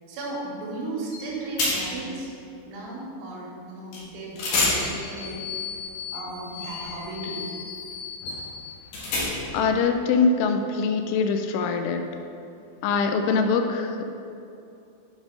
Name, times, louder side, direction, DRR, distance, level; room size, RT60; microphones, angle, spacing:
voice 1, 0.1-2.4 2.7-5.5 5.9-7.4, right 2 dB, 75° right, -4 dB, 3.8 m, -35 dB
sound 1, 1.1-1.3 1.6-2.1 3.9-4.0 4.4-9.7, left 3 dB, 60° left, 2.4 m, -30 dB
voice 2, 9.5-12.0 12.8-14.1, left 4 dB, 85° left, 5 dB, 2.9 m, -23 dB
8.3 x 4.8 x 5.0 m, 2.7 s
omnidirectional pair, 5.5 m